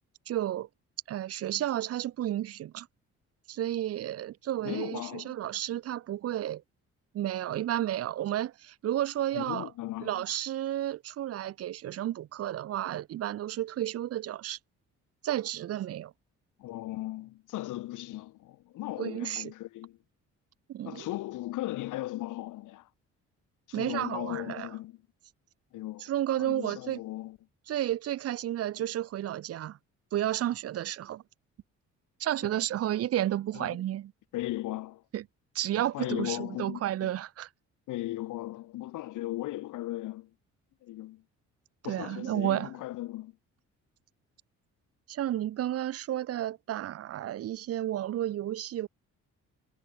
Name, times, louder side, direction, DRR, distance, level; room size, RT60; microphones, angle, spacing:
voice 1, 0.3-0.7 1.1-2.9 3.5-6.6 7.1-9.7 10.0-14.6 15.2-16.1 19.0-19.5 20.7-21.1 23.7-24.7 26.0-27.0 27.7-29.8 30.1-31.2 32.2-34.1 35.1-35.2 35.5-37.5 41.8-42.7 45.1-48.9, right 12 dB, 55° right, 0.5 m, -32 dB
voice 2, 4.6-5.4 9.3-10.2 16.6-20.0 20.8-22.9 23.7-25.0 25.7-26.1 26.4-27.4 32.4-32.5 33.5-33.8 34.3-35.0 35.9-37.1 37.9-40.3 40.8-41.2 41.8-43.4, left 16 dB, 85° left, 1.6 m, -37 dB
cardioid pair, 90°, 30 cm